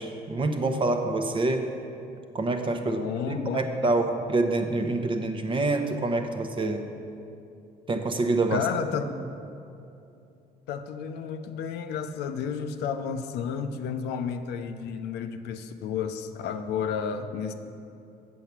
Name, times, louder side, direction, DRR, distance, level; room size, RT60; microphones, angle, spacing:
voice 1, 0.0-1.7 2.3-6.9 7.9-8.7, right 2 dB, 30° right, 5 dB, 0.8 m, -26 dB
voice 2, 2.9-3.9 8.5-9.1 10.7-17.5, left 7 dB, 80° left, 8 dB, 0.6 m, -32 dB
8.3 x 6.8 x 6.0 m, 2.6 s
cardioid pair, 110°, 17 cm